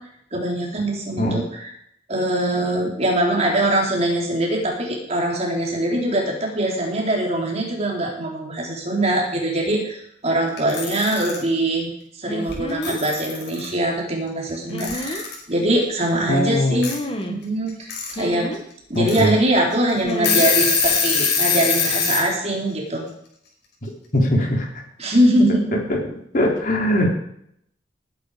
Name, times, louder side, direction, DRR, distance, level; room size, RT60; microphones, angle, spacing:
voice 1, 0.3-1.7 2.1-10.0 10.2-16.9 17.2-18.5 18.9-23.1 25.0-25.8, right 1 dB, 35° right, -1 dB, 4.3 m, -22 dB
Alarm / Clock, 10.6-11.4 12.5-12.6 12.8-13.7 14.8-15.4 16.8-16.9 17.7-18.1 18.5-18.6 19.1-19.2 19.7-19.8 20.1-22.3, left 6 dB, 65° left, 5.2 m, -22 dB
sound 1, 12.3-13.0 14.7-15.2 16.8-17.4 18.1-18.6 20.0-20.5 20.8-21.0, left 1 dB, 30° left, 1.8 m, -29 dB
voice 2, 16.3-16.8 18.9-19.3 24.1-24.7 25.9-26.0 26.3-27.1, equal, 50° left, 0 dB, 3.7 m, -20 dB
19.5 x 10.0 x 5.2 m, 0.71 s
head